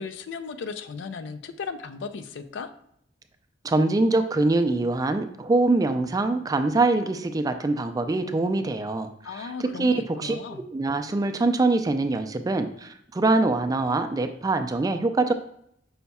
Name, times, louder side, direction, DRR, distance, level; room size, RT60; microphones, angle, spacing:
voice 1, 0.0-2.7 9.2-10.6, left 5 dB, 75° left, 10 dB, 0.4 m, -36 dB
voice 2, 3.6-9.1 9.8-15.3, right 2 dB, 20° right, 8 dB, 0.3 m, -24 dB
5.6 x 2.2 x 4.1 m, 0.71 s
head